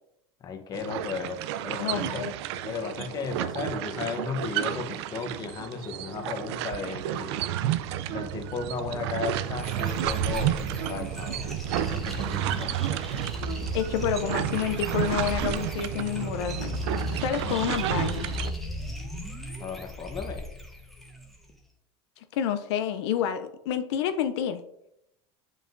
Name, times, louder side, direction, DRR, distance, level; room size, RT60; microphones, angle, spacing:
voice 1, 0.4-1.4 1.6-2.2 2.6-7.4 8.1-11.4 11.9-13.2 19.6-20.4, left 5 dB, 30° left, 5 dB, 0.9 m, -35 dB
sound 1, 0.7-18.5, right 11 dB, 80° right, 0.4 m, -31 dB
voice 2, 1.8-2.4 13.7-16.8 17.1-18.3 22.3-24.6, left 9 dB, 85° left, 9 dB, 0.5 m, -29 dB
sound 2, 9.6-21.5, left 1 dB, ahead, 1.0 m, -37 dB
7.3 x 5.3 x 2.5 m, 0.81 s
supercardioid pair, 140°, 14 cm